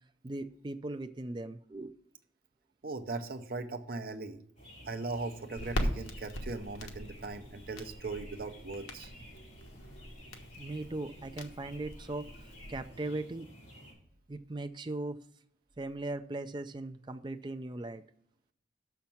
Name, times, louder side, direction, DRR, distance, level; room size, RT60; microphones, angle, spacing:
voice 1, 0.2-1.9 10.6-13.5 14.3-15.2 15.8-18.0, right 2 dB, 25° right, 10 dB, 0.4 m, -39 dB
voice 2, 2.8-4.4 4.9-9.1, right 3 dB, 50° right, 7 dB, 0.7 m, -39 dB
sound 1, 4.6-13.9, equal, 45° left, 4.2 m, -52 dB
Crackle, 5.6-12.9, equal, 85° left, 1.3 m, -41 dB
6.5 x 5.8 x 7.1 m, 0.69 s
head